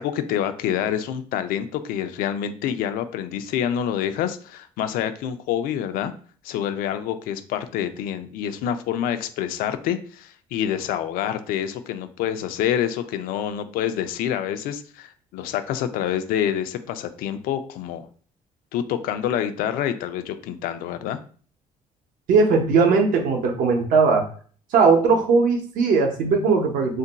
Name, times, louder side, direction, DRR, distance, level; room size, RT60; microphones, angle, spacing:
voice 1, 0.0-6.1 6.4-18.1 18.7-21.2, left 10 dB, 90° left, 9 dB, 0.4 m, -27 dB
voice 2, 22.3-24.2 24.7-27.0, right 4 dB, 70° right, 3 dB, 0.7 m, -19 dB
2.5 x 2.2 x 3.9 m, 0.44 s
cardioid pair, 160°, 14 cm